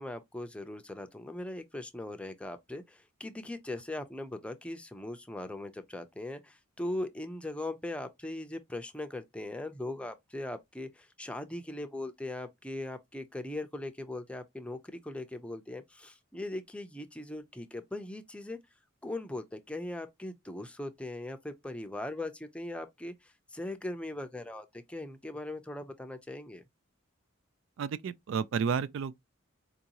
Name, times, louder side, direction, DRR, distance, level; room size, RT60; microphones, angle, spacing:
voice 1, 0.0-18.6 19.0-26.6, left 1 dB, 5° left, 0.5 m, -40 dB
voice 2, 27.8-29.1, right 6 dB, 65° right, 0.3 m, -31 dB
4.6 x 2.6 x 2.8 m
head